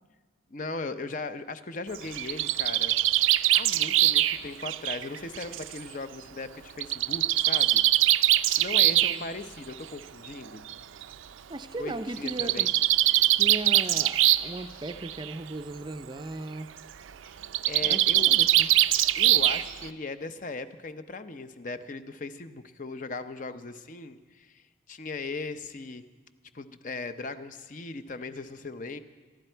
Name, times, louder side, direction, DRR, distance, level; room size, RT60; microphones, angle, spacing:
voice 1, 0.5-3.0 3.5-7.8 8.5-10.6 11.8-12.7 17.6-18.3 19.2-26.0 26.5-29.0, left 3 dB, 40° left, 10 dB, 0.6 m, -38 dB
Bird, 1.9-5.7 6.8-9.2 10.2-10.3 10.7-10.8 11.0-11.1 12.2-14.6 14.9-15.3 17.4-19.9, right 14 dB, 85° right, 0.5 m, -23 dB
voice 2, 8.8-9.3 11.5-12.7 13.4-16.7 17.8-18.7, right 2 dB, 25° right, 9 dB, 0.5 m, -37 dB
25.5 x 11.5 x 4.5 m, 1.4 s
head